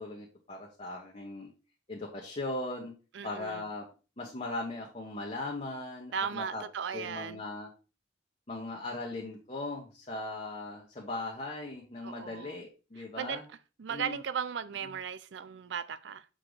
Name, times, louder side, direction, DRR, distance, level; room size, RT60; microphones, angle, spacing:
voice 1, 0.0-1.5 1.9-2.9 3.2-3.9 4.2-6.6 6.9-7.7 8.5-13.4 13.9-14.2 14.9-15.0, left 2 dB, 35° left, 1.1 m, -39 dB
voice 2, 3.1-3.6 6.1-7.4 12.0-12.6 13.2-16.3, right 7 dB, 65° right, 0.4 m, -37 dB
6.7 x 5.0 x 3.9 m
head